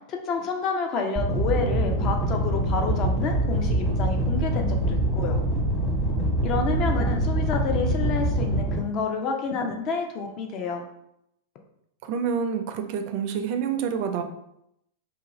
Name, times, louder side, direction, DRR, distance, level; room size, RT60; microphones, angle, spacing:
voice 1, 0.1-5.4 6.4-10.9, left 4 dB, 40° left, 3 dB, 0.5 m, -29 dB
sound 1, 1.2-8.8, right 1 dB, 15° left, 1.1 m, -25 dB
sound 2, 7.5-8.5, equal, 75° left, 1.3 m, -35 dB
voice 2, 12.0-14.2, right 7 dB, 50° right, 7 dB, 0.4 m, -27 dB
2.6 x 2.4 x 3.0 m, 0.79 s
hypercardioid pair, 100°, 0 cm